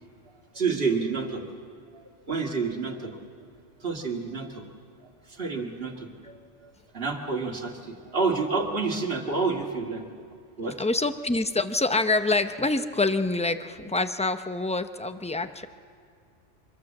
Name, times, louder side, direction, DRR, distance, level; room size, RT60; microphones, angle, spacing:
voice 1, 0.5-1.4 2.3-3.1 3.8-4.5 5.4-5.9 6.3-6.4 6.9-10.0 10.6-10.8, right 4 dB, 50° right, 2 dB, 2.2 m, -28 dB
voice 2, 10.8-15.7, left 2 dB, 5° left, 9 dB, 0.5 m, -26 dB
25.5 x 21.0 x 7.3 m, 2.2 s
omnidirectional pair, 1.3 m